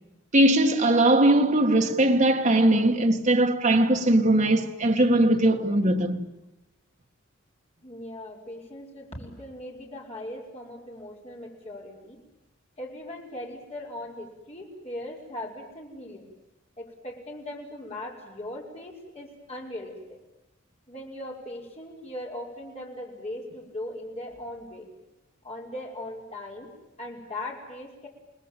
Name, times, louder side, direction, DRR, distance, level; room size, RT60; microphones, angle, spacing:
voice 1, 0.3-6.2, right 1 dB, 35° right, 1.8 m, -20 dB
voice 2, 7.8-12.2 12.8-16.3 16.8-20.2 20.9-24.9 25.4-26.7 27.0-28.1, left 1 dB, 30° left, 5.8 m, -39 dB
29.5 x 20.0 x 9.2 m
head